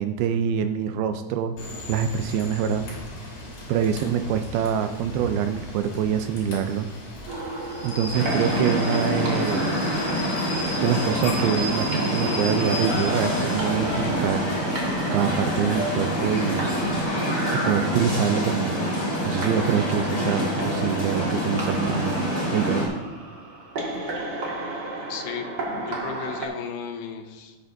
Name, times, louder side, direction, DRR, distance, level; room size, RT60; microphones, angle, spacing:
voice 1, 0.0-1.5 1.9-2.8 3.7-6.9 7.8-9.8 10.8-14.4 15.1-16.7 17.5-18.9 19.3-22.2 22.5-22.9, right 8 dB, 80° right, 8 dB, 2.3 m, -25 dB
Rain / Train, 1.6-17.0, left 1 dB, 60° left, 5.0 m, -37 dB
sound 1, 7.3-26.5, right 2 dB, 45° right, 1.3 m, -35 dB
sound 2, 8.1-22.9, equal, 25° left, 2.7 m, -26 dB
voice 2, 25.1-25.5 25.7-27.6, left 6 dB, 90° left, 4 dB, 3.2 m, -35 dB
16.5 x 8.3 x 2.6 m, 1.2 s
omnidirectional pair, 4.7 m